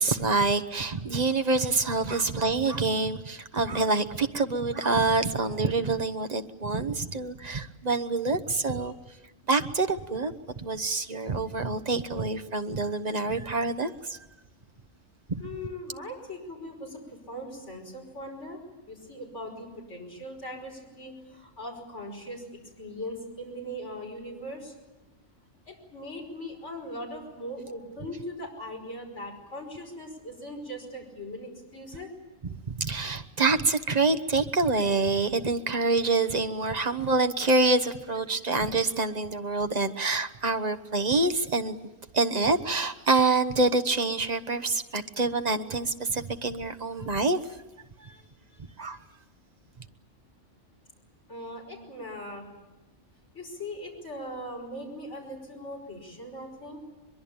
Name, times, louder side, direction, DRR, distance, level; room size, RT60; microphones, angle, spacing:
voice 1, 0.0-8.9 9.5-14.2 15.3-15.4 32.7-41.8 42.1-47.4 48.8-49.0, right 3 dB, 35° right, 8 dB, 1.1 m, -26 dB
voice 2, 15.4-24.7 25.7-32.1 48.0-48.2 51.3-52.5 53.3-56.8, left 1 dB, 65° left, -1 dB, 5.8 m, -40 dB
23.0 x 22.5 x 8.8 m, 1.1 s
omnidirectional pair, 1.3 m